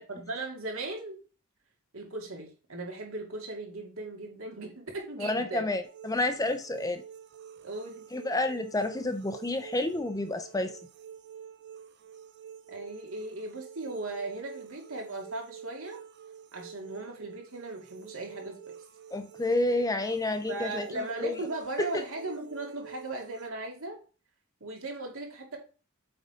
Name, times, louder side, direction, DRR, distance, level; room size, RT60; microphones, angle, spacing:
voice 1, 0.1-1.2 1.9-5.7 7.6-8.1 12.7-16.0 16.5-18.7 20.5-24.0 24.6-25.6, right 2 dB, 70° right, 1 dB, 2.4 m, -38 dB
voice 2, 5.2-7.0 8.1-10.7 19.1-21.4 21.8-22.0, left 2 dB, 15° left, 8 dB, 0.7 m, -30 dB
sound 1, 5.8-23.5, right 8 dB, 55° right, 0.7 m, -48 dB
8.0 x 3.8 x 5.1 m, 0.35 s
head